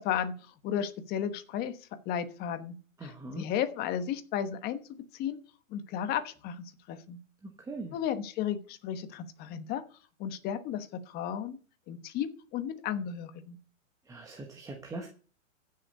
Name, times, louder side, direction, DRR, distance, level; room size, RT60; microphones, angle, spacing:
voice 1, 0.0-2.7 3.0-4.8 5.1-5.4 5.7-7.2 7.9-9.8 10.2-11.6 11.9-13.6, left 9 dB, 25° left, 11 dB, 1.1 m, -34 dB
voice 2, 3.0-3.5 7.4-8.0 14.1-15.1, right 2 dB, 10° right, 1 dB, 1.1 m, -41 dB
15.0 x 6.7 x 5.3 m, 0.39 s
hypercardioid pair, 145°, 40 cm